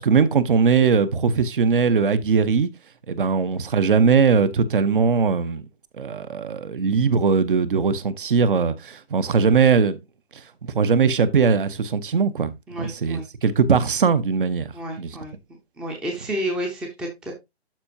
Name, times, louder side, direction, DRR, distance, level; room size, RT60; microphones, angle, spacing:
voice 1, 0.0-2.7 3.1-5.6 6.0-10.0 10.6-12.5 12.8-14.7 15.0-15.1, right 5 dB, 55° right, 1.0 m, -20 dB
voice 2, 12.7-13.2 14.7-15.4 15.8-17.3, equal, 5° right, 0.6 m, -30 dB
12.0 x 4.4 x 2.7 m
figure-of-eight pair, 145°, 32 cm